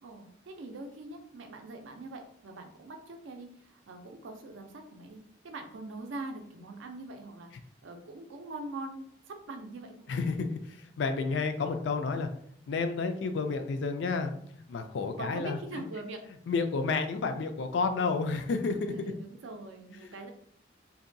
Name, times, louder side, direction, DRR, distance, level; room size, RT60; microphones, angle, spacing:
voice 1, 0.0-5.2 5.4-9.9 15.2-16.2 18.9-20.3, right 2 dB, 90° right, 4 dB, 0.4 m, -43 dB
voice 2, 10.1-12.3 12.7-15.8 16.5-19.1 20.0-20.1, left 4 dB, 75° left, 7 dB, 0.3 m, -31 dB
2.7 x 2.2 x 2.6 m, 0.65 s
head